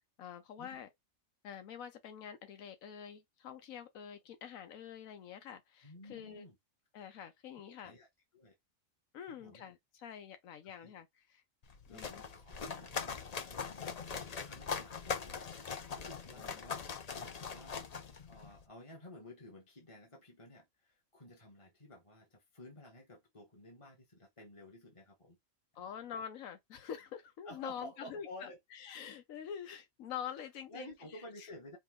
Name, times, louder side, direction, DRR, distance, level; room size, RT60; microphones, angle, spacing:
voice 1, 0.2-0.9 1.4-6.5 6.9-7.9 9.1-11.4 11.9-12.2 16.4-16.6 25.7-30.9 31.4-31.5, left 8 dB, 85° left, 1.2 m, -46 dB
voice 2, 5.8-6.5 7.6-8.1 8.3-8.5 9.3-9.6 10.6-10.9 11.9-12.1 12.3-16.9 17.1-17.8 18.3-25.4 25.7-25.9 27.4-28.6 30.7-31.8, left 1 dB, 25° left, 1.2 m, -53 dB
sound 1, 11.6-18.6, left 6 dB, 40° left, 0.6 m, -41 dB
5.3 x 2.5 x 3.6 m
omnidirectional pair, 1.4 m